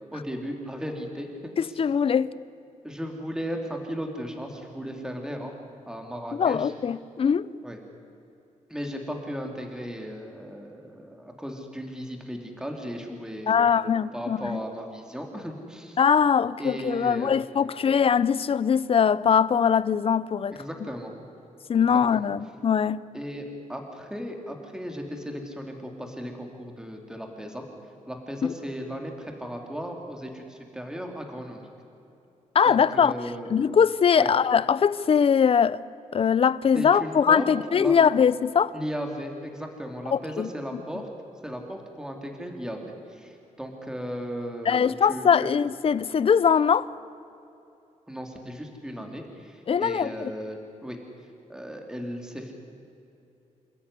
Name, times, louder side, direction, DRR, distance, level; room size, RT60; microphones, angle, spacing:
voice 1, 0.1-1.5 2.8-5.5 5.9-6.7 7.6-7.8 8.7-13.8 14.1-16.0 16.6-17.4 20.5-21.1 21.9-22.3 23.1-27.6 28.1-31.6 32.6-33.5 34.1-34.3 36.7-37.5 37.8-37.9 38.7-41.1 41.4-45.5 48.1-51.0 51.5-52.5, equal, 5° right, 3.0 m, -36 dB
voice 2, 1.6-2.3 6.4-7.5 13.5-14.6 16.0-20.6 21.7-23.0 28.4-28.5 32.5-33.1 33.5-35.8 36.1-38.7 40.1-40.5 44.7-46.9 49.7-50.3, left 7 dB, 45° left, 0.6 m, -22 dB
27.5 x 13.5 x 9.9 m
cardioid pair, 110°, 13 cm